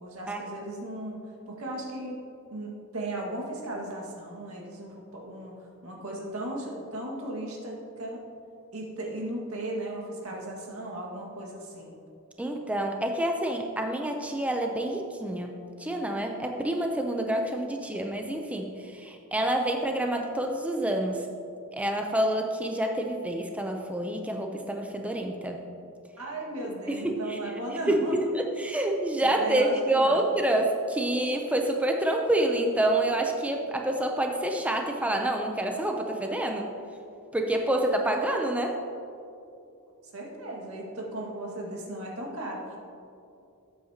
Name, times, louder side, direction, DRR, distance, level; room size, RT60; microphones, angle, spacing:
voice 1, 0.0-1.2 1.5-2.2 2.5-8.2 8.7-12.0 26.2-28.2 29.2-30.2 40.1-42.8, right 1 dB, 80° right, -1 dB, 1.9 m, -36 dB
voice 2, 12.4-21.3 21.7-25.6 26.9-27.4 27.9-36.7 37.3-38.8, right 1 dB, 5° right, 3 dB, 0.5 m, -27 dB
12.5 x 8.5 x 2.9 m, 2.6 s
head